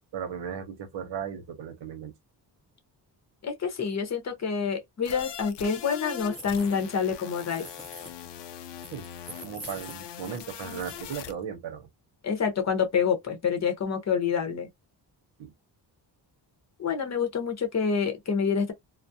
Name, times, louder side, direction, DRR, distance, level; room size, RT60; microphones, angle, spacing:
voice 1, 0.1-2.1 8.9-11.9 15.4-15.5, right 8 dB, 85° right, 0.8 m, -37 dB
voice 2, 3.4-7.6 12.2-14.7 16.8-18.7, left 6 dB, 40° left, 0.7 m, -27 dB
sound 1, 5.0-11.3, left 10 dB, 75° left, 0.5 m, -41 dB
sound 2, 6.1-7.0 7.3-8.1 8.8-10.4 10.7-11.3, right 1 dB, 15° right, 0.6 m, -46 dB
2.3 x 2.0 x 2.6 m
cardioid pair, 120°, 42 cm